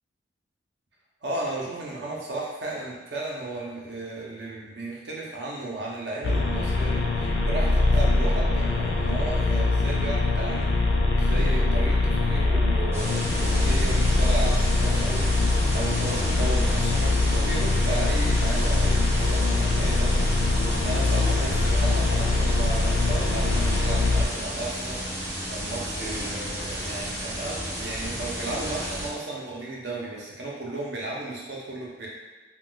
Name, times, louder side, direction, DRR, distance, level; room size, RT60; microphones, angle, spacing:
voice 1, 1.2-10.7 11.1-32.1, right 2 dB, 70° right, -4 dB, 0.7 m, -34 dB
sound 1, 6.2-24.3, left 2 dB, 75° left, 0.4 m, -23 dB
sound 2, 12.9-29.1, equal, 15° right, 0.5 m, -32 dB
2.3 x 2.3 x 3.8 m, 1.3 s
head